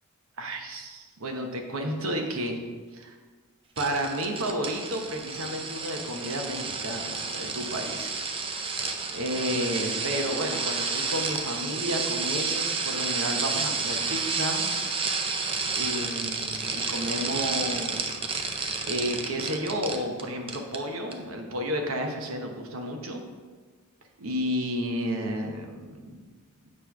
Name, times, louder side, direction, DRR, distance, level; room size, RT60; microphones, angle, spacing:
voice 1, 0.4-2.6 2.9-3.2 3.8-8.2 8.6-14.7 15.7-18.2 18.8-23.2 24.2-26.2, equal, 70° right, 3 dB, 1.0 m, -32 dB
sound 1, 3.8-20.2 20.5-20.8 21.1-21.2, right 4 dB, 25° right, 0.5 m, -31 dB
8.4 x 3.2 x 5.8 m, 1.4 s
head